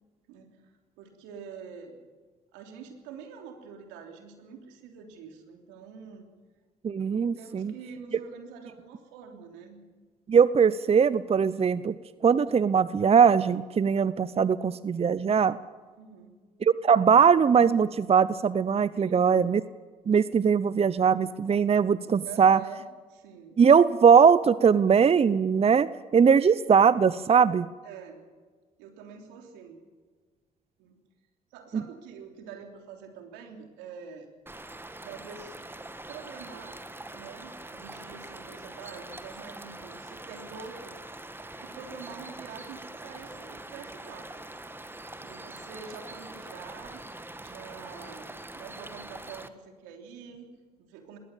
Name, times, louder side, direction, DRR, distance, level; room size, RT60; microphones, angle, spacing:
voice 1, 0.3-2.0 2.5-6.3 7.4-9.8 16.0-16.7 18.9-19.4 22.2-22.8 23.1-23.6 27.8-28.2 28.8-29.8 30.8-31.0 31.5-34.3 35.0-35.7 36.1-36.8 37.1-41.0 41.6-44.4 45.2-47.0 47.4-51.2, right 6 dB, 80° right, 4 dB, 3.3 m, -46 dB
voice 2, 6.8-7.7 10.3-12.0 12.2-15.6 16.6-19.6 20.1-22.6 23.6-27.7 31.7-31.8, right 6 dB, 35° right, 17 dB, 0.7 m, -21 dB
sound 1, 34.5-49.5, right 2 dB, 10° right, 1.7 m, -43 dB
20.5 x 18.0 x 7.3 m, 1.4 s
hypercardioid pair, 60°, 18 cm